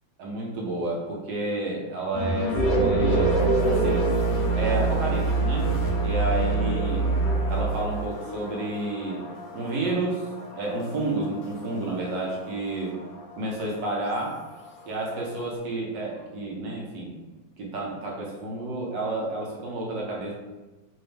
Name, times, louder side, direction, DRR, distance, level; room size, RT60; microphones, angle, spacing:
voice 1, 0.2-3.3 3.7-4.1 4.5-5.7 6.0-7.2 7.5-9.2 9.5-13.0 13.4-14.4 14.9-17.1 17.6-20.3, right 2 dB, 70° right, -3 dB, 1.5 m, -30 dB
sound 1, 2.1-15.6, left 1 dB, 90° left, 1.5 m, -35 dB
sound 2, 2.5-8.0, right 3 dB, 60° left, 0.7 m, -24 dB
4.0 x 2.7 x 3.2 m, 1.2 s
omnidirectional pair, 2.1 m